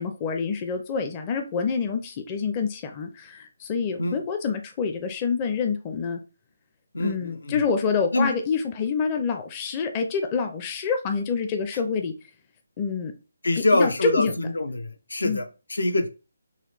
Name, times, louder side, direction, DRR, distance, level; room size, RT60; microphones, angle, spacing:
voice 1, 0.0-6.2 7.0-12.1 12.8-13.1 13.7-14.3 15.2-15.4, left 5 dB, 25° left, 6 dB, 0.5 m, -27 dB
voice 2, 6.9-7.6 8.1-8.3 13.4-16.1, left 2 dB, 80° left, 8 dB, 0.7 m, -25 dB
3.9 x 2.3 x 3.2 m, 0.31 s
figure-of-eight pair, 155°, 0 cm